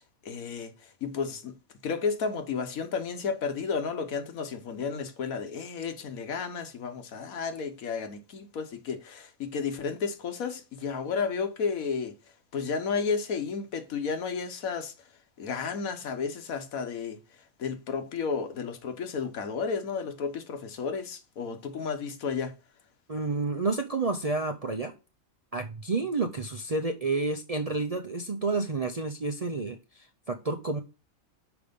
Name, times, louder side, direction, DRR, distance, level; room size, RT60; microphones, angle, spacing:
voice 1, 0.2-1.5 1.8-12.1 12.5-14.9 15.4-17.2 17.6-22.5, left 5 dB, 80° left, 1.4 m, -32 dB
voice 2, 23.1-24.9 25.5-30.8, right 3 dB, 45° right, 0.5 m, -30 dB
6.0 x 4.9 x 5.2 m
omnidirectional pair, 1.5 m